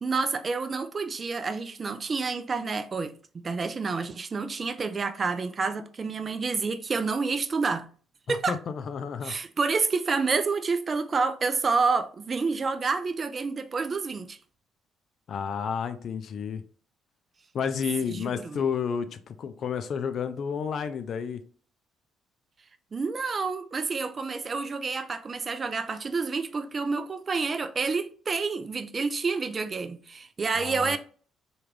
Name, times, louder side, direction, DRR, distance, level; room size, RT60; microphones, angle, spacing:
voice 1, 0.0-7.9 8.3-8.6 9.2-14.4 18.1-18.6 22.9-31.0, right 4 dB, 35° right, 0.3 m, -29 dB
voice 2, 8.3-9.3 15.3-16.6 17.5-21.4 30.5-31.0, left 6 dB, 50° left, 0.3 m, -31 dB
3.4 x 2.3 x 3.1 m
figure-of-eight pair, 45°, 0 cm